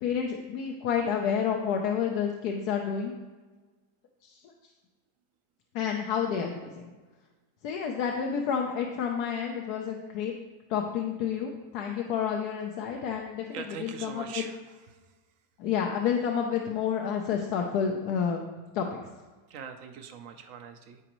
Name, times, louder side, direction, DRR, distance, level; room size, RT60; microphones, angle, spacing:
voice 1, 0.0-3.1 4.2-4.4 5.7-6.7 7.6-10.3 10.7-14.4 15.6-18.4 18.7-19.0, left 7 dB, 75° left, 2 dB, 1.2 m, -29 dB
voice 2, 13.5-15.0 19.5-21.0, right 7 dB, 60° right, 7 dB, 1.0 m, -42 dB
14.0 x 5.0 x 3.0 m, 1.3 s
omnidirectional pair, 1.8 m